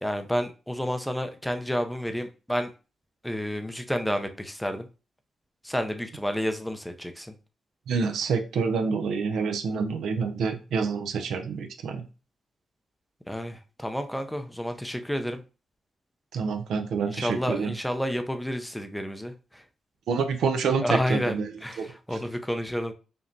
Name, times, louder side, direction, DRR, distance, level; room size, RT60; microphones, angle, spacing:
voice 1, 0.0-2.7 3.2-4.9 5.6-7.3 13.3-15.4 17.1-19.6 20.8-22.9, equal, 5° left, 0.5 m, -30 dB
voice 2, 7.9-12.0 16.3-17.7 20.1-21.5 21.8-21.9 22.1-22.2, right 5 dB, 85° right, 0.5 m, -27 dB
5.1 x 2.9 x 2.6 m
cardioid pair, 105°, 0 cm